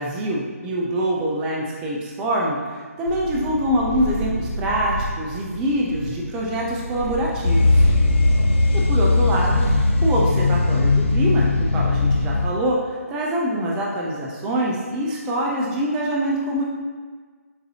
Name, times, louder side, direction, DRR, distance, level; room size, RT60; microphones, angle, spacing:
voice 1, 0.0-7.8 8.7-9.7 10.0-16.6, right 1 dB, 10° right, -3 dB, 0.3 m, -24 dB
Purr, 3.1-10.0, right 2 dB, 80° right, 0.9 m, -30 dB
sound 1, 7.4-12.5, left 3 dB, 50° left, 0.6 m, -18 dB
6.8 x 2.6 x 2.7 m, 1.5 s
figure-of-eight pair, 160°, 8 cm